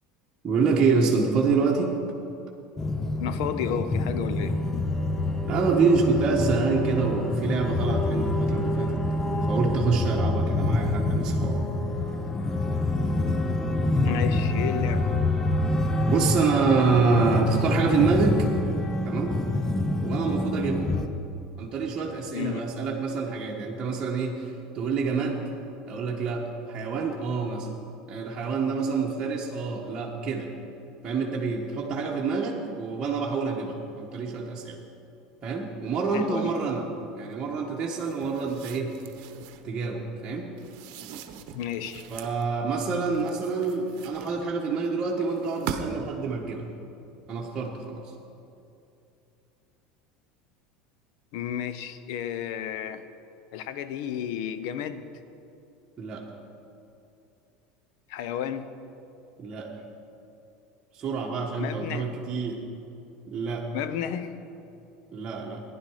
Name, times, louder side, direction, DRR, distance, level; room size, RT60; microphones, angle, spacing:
voice 1, 0.4-2.0 5.4-9.0 9.5-11.6 16.1-18.5 19.0-19.4 20.0-20.9 21.6-24.5 24.7-25.5 25.8-27.7 28.1-30.5 31.0-34.8 35.4-36.9 37.2-38.9 39.6-40.5 42.1-46.6 47.3-48.0 56.0-56.2 59.4-59.7 61.0-62.6 63.3-63.7 65.1-65.6, right 4 dB, 30° right, -3 dB, 1.5 m, -26 dB
sound 1, 2.8-21.1, left 2 dB, 20° left, 0.8 m, -26 dB
voice 2, 3.2-4.6 14.0-15.1 22.3-22.7 36.1-36.5 41.5-42.0 51.3-53.0 53.5-55.1 58.1-58.7 61.6-62.1 63.7-64.3, left 9 dB, 70° left, 11 dB, 0.8 m, -32 dB
sound 2, 38.0-39.7 40.6-42.4 43.1-44.7 45.3-46.1, right 8 dB, 65° right, 0.9 m, -40 dB
15.0 x 11.0 x 4.9 m, 2.7 s
supercardioid pair, 115°, 2 cm